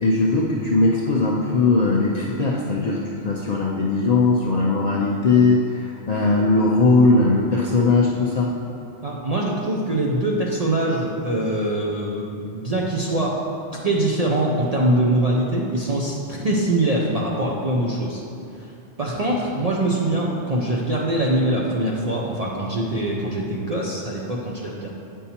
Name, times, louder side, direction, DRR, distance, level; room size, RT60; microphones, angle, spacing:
voice 1, 0.0-3.0 3.2-8.5, left 3 dB, 55° left, -3 dB, 0.4 m, -19 dB
voice 2, 9.0-13.3 13.8-18.2 19.0-24.9, right 1 dB, 50° right, -3 dB, 0.4 m, -23 dB
8.2 x 5.4 x 2.8 m, 2.6 s
omnidirectional pair, 1.3 m